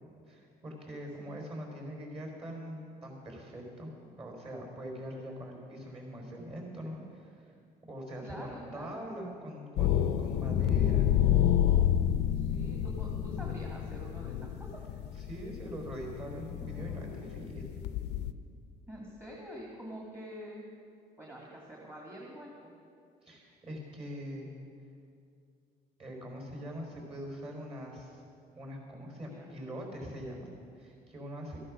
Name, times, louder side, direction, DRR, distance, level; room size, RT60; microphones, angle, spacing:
voice 1, 0.3-3.9 4.2-7.5 7.8-11.1 15.1-17.9 23.2-24.5 26.0-28.2 28.5-31.6, equal, 35° right, 1 dB, 4.2 m, -43 dB
voice 2, 8.2-9.0 12.3-14.7 16.6-17.3 18.9-20.6 21.2-22.7 29.3-29.5, equal, 15° right, -3 dB, 2.0 m, -46 dB
sound 1, 9.8-18.3, left 10 dB, 90° left, 0.6 m, -29 dB
14.0 x 11.0 x 6.2 m, 2.4 s
cardioid pair, 110°, 17 cm